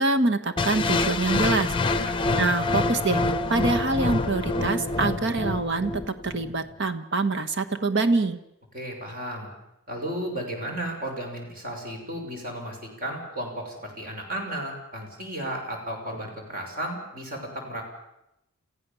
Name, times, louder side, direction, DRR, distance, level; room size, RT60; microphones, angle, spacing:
voice 1, 0.0-2.0 2.4-3.2 3.5-8.4, right 3 dB, 60° right, 10 dB, 1.4 m, -25 dB
sound 1, 0.6-6.6, left 3 dB, 25° left, 0.8 m, -26 dB
voice 2, 1.9-2.2 8.7-9.5 9.9-17.8, right 1 dB, 45° right, 2 dB, 5.9 m, -34 dB
29.0 x 15.0 x 7.1 m, 0.85 s
head